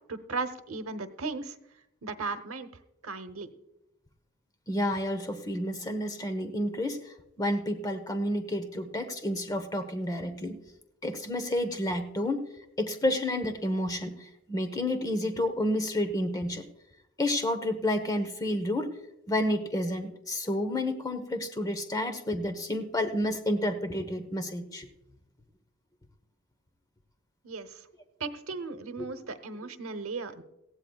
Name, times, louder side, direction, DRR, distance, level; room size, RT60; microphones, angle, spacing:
voice 1, 0.1-1.5 2.0-2.7 3.0-3.5 27.4-27.8 28.2-30.4, right 4 dB, 90° right, 10 dB, 0.9 m, -36 dB
voice 2, 4.7-10.6 11.0-12.4 12.8-14.2 14.5-16.6 17.2-18.9 19.3-24.9, left 1 dB, 15° left, 7 dB, 1.0 m, -30 dB
18.5 x 15.5 x 2.4 m, 0.88 s
head